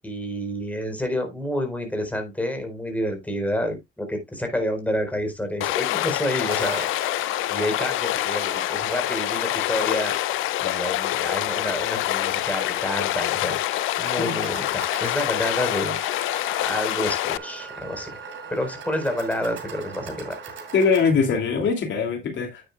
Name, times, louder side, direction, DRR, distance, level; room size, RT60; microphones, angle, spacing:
voice 1, 0.0-6.9 7.5-10.1 10.6-13.6 14.0-16.0 16.6-18.1 18.5-20.4, equal, 5° left, 4.3 m, -29 dB
Stream, 5.6-17.4, left 17 dB, 85° left, 0.4 m, -26 dB
sound 1, 6.4-21.1, right 5 dB, 75° right, 5.0 m, -40 dB
sound 2, 13.6-21.7, right 5 dB, 50° right, 6.1 m, -46 dB
voice 2, 20.7-22.6, left 5 dB, 70° left, 2.6 m, -22 dB
9.8 x 9.2 x 2.3 m
cardioid pair, 90°, 20 cm